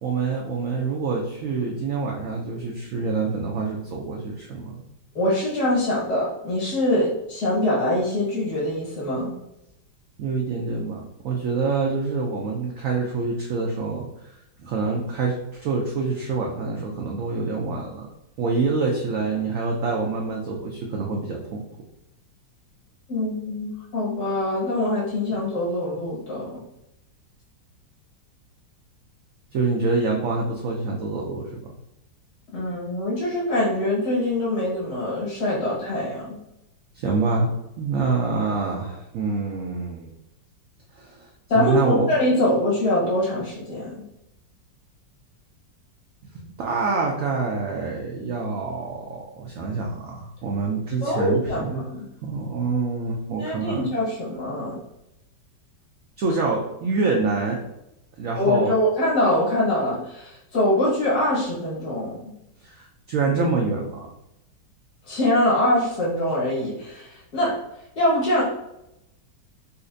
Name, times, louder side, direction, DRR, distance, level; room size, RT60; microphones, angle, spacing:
voice 1, 0.0-4.8 10.2-18.1 18.4-21.6 25.3-25.4 25.9-26.0 29.5-31.7 36.9-37.5 37.8-40.1 41.0-41.3 41.5-42.0 46.6-51.9 52.2-53.9 56.2-57.6 58.2-58.7 62.6-64.1, right 4 dB, 80° right, -1 dB, 0.7 m, -26 dB
voice 2, 5.2-9.3 23.1-26.6 32.5-36.4 41.5-44.0 51.0-52.1 53.4-54.8 56.2-56.3 58.4-62.3 65.1-67.6 68.0-68.4, left 1 dB, 60° left, -6 dB, 1.9 m, -24 dB
4.1 x 2.4 x 2.5 m, 0.85 s
omnidirectional pair, 2.0 m